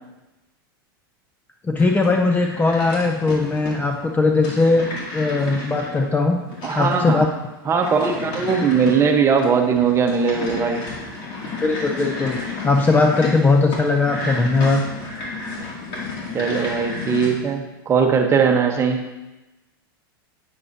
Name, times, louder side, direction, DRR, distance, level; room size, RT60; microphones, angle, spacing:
voice 1, 1.6-4.9 5.1-6.4 6.8-7.3 11.6-14.8, left 3 dB, 15° left, 4 dB, 0.5 m, -19 dB
sound 1, 1.8-17.3, left 3 dB, 45° left, 2.5 m, -32 dB
voice 2, 6.6-7.3 7.6-10.8 16.3-19.0, right 6 dB, 20° right, 3 dB, 1.1 m, -19 dB
9.5 x 8.6 x 2.8 m, 1.1 s
hypercardioid pair, 120°, 12 cm